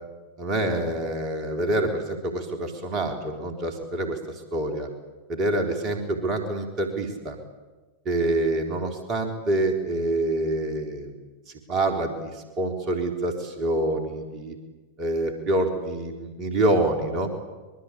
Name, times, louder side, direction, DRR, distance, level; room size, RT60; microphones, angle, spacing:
voice 1, 0.4-4.2 4.5-4.9 5.3-7.4 8.1-11.1 11.5-14.6 15.0-17.3, right 1 dB, 35° right, 4 dB, 3.6 m, -26 dB
24.0 x 23.0 x 8.6 m, 1.2 s
figure-of-eight pair, 90°, 0 cm